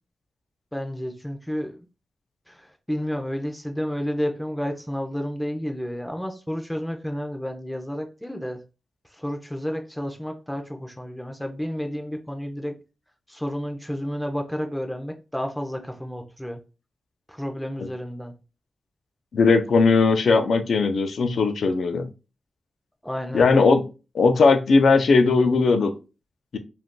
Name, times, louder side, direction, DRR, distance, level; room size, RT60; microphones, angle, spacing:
voice 1, 0.7-1.9 2.5-8.6 9.1-12.8 13.3-16.6 17.3-18.3 23.0-23.5, equal, 5° left, 0.4 m, -31 dB
voice 2, 19.3-22.1 23.3-23.8 24.1-25.9, left 4 dB, 75° left, 0.4 m, -18 dB
2.4 x 2.2 x 3.5 m
wide cardioid pair, 100°, 0 cm